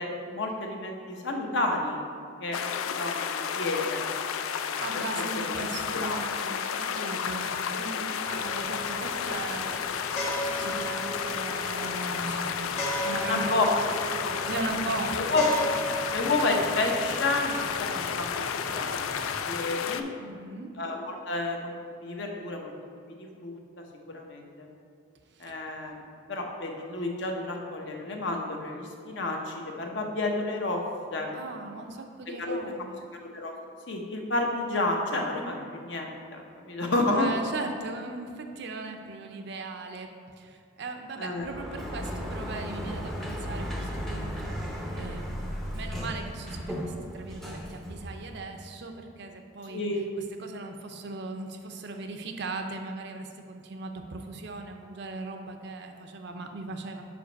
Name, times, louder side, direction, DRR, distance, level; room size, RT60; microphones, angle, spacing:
voice 1, 0.0-2.0 2.4-4.1 4.5-4.7 5.2-5.6 6.0-6.2 9.7-9.8 13.2-13.6 15.2-15.4 15.9-18.9 19.3-20.1 20.8-21.7 22.0-22.7 23.2-23.6 24.1-24.7 25.4-26.0 26.3-30.8 31.1-31.3 32.4-32.6 33.3-33.5 33.9-37.3 41.2-41.5 49.7-50.0, left 2 dB, 60° left, 1 dB, 0.8 m, -30 dB
sound 1, 2.5-20.0, left 7 dB, 80° left, 0.3 m, -32 dB
voice 2, 4.8-9.8 10.5-15.4 20.2-20.7 25.3-25.5 31.3-33.0 37.1-40.1 40.4-45.4 45.7-49.8 50.4-57.0, right 3 dB, 55° right, 5 dB, 0.5 m, -38 dB
sound 2, 8.2-19.4, right 1 dB, 30° left, 1.0 m, -37 dB
Sliding door, 41.4-48.5, equal, ahead, 0.5 m, -35 dB
5.1 x 4.9 x 5.1 m, 2.3 s
head